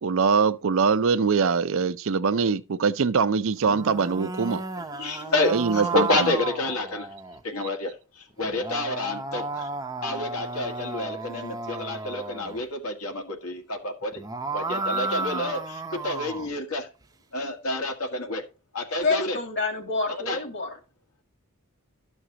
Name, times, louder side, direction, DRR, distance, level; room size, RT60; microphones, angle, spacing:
voice 1, 0.0-4.6 5.5-6.0, right 5 dB, 60° right, 0.5 m, -23 dB
Human Cat, 3.5-7.4 8.4-12.6 14.0-16.5, right 3 dB, 15° right, 0.6 m, -33 dB
voice 2, 4.8-7.1 7.4-9.7 10.0-14.2 14.5-16.9 17.3-18.4 18.7-19.4 20.1-20.4, left 2 dB, 80° left, 1.8 m, -29 dB
voice 3, 19.0-20.7, left 3 dB, 50° left, 2.1 m, -27 dB
12.0 x 6.3 x 2.8 m
head